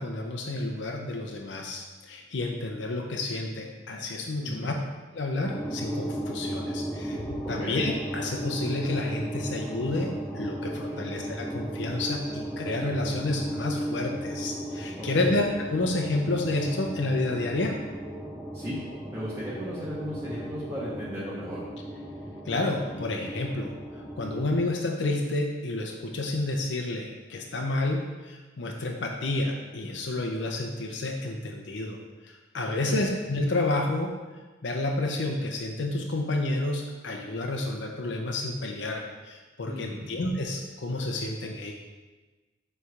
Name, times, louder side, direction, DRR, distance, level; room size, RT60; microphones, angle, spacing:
voice 1, 0.0-4.7 5.1-17.7 22.4-32.0 32.2-34.1 34.6-41.7, left 2 dB, 80° left, 1 dB, 0.7 m, -30 dB
voice 2, 4.4-4.8 7.4-7.8 10.9-11.1 15.0-15.4 18.5-18.8 19.1-21.7 32.8-33.1 39.7-40.1, equal, 15° right, -9 dB, 1.2 m, -36 dB
sound 1, 5.4-24.6, right 1 dB, 5° left, 0.6 m, -36 dB
7.2 x 3.3 x 4.7 m, 1.2 s
head